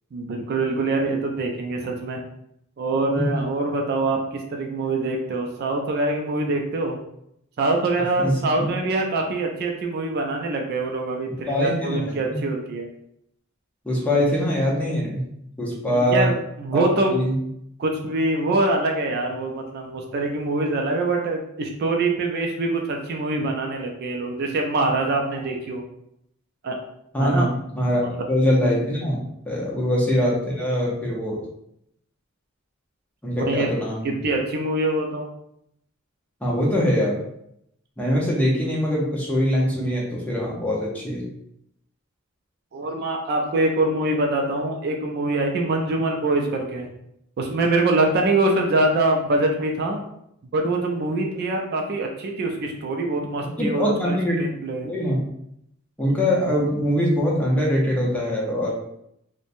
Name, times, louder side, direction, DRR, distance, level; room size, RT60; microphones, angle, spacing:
voice 1, 0.1-2.2 2.8-7.0 7.6-12.9 15.9-16.3 16.6-17.1 17.8-25.8 26.6-26.8 27.2-27.5 29.7-29.8 33.3-33.7 34.2-35.3 42.7-46.9 47.4-50.0 50.5-54.9, right 2 dB, 50° right, 2 dB, 0.3 m, -24 dB
voice 2, 8.2-8.7 11.5-12.4 13.8-15.2 15.6-16.3 16.7-17.4 27.1-27.5 27.8-28.0 28.3-31.4 33.2-34.1 36.4-37.2 38.0-41.3 53.6-54.4 54.8-55.2 56.0-58.7, equal, 5° left, -5 dB, 0.6 m, -23 dB
3.0 x 2.1 x 2.5 m, 0.76 s
head